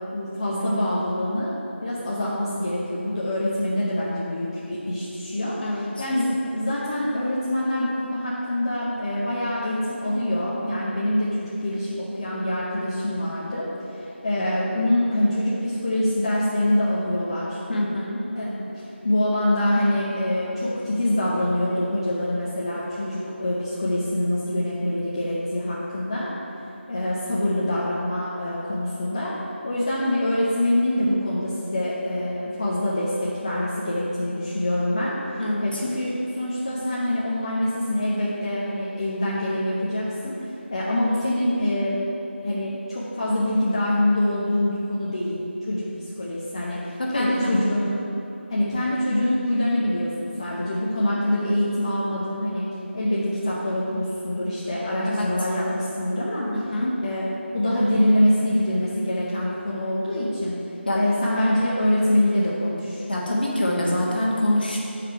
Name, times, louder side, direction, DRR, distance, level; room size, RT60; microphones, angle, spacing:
voice 1, 0.1-1.5 1.8-13.7 14.0-17.6 18.3-18.7 19.0-26.3 26.9-29.3 29.6-35.2 35.6-40.4 40.7-42.1 42.4-48.0 48.5-52.7 52.9-56.5 57.0-57.2 57.5-60.5 60.9-63.0, left 1 dB, 25° left, -7 dB, 0.6 m, -25 dB
voice 2, 5.6-6.0 17.7-18.2 35.4-35.8 47.0-47.6 55.0-55.3 56.5-56.9 60.9-61.0 63.1-64.8, left 1 dB, 50° left, -3 dB, 1.3 m, -25 dB
7.5 x 5.0 x 4.4 m, 3.0 s
figure-of-eight pair, 170°, 7 cm